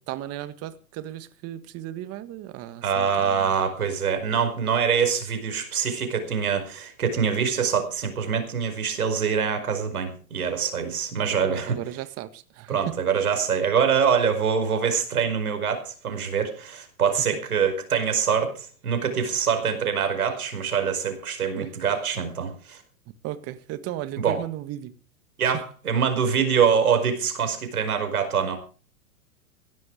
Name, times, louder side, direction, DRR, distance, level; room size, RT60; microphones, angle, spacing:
voice 1, 0.0-3.5 11.5-12.8 21.6-21.7 23.2-24.9, right 13 dB, 35° right, 1.7 m, -36 dB
voice 2, 2.8-11.8 12.7-22.8 24.2-24.4 25.4-28.6, right 7 dB, 85° right, 5.1 m, -24 dB
16.5 x 11.5 x 5.1 m
hypercardioid pair, 120°, 43 cm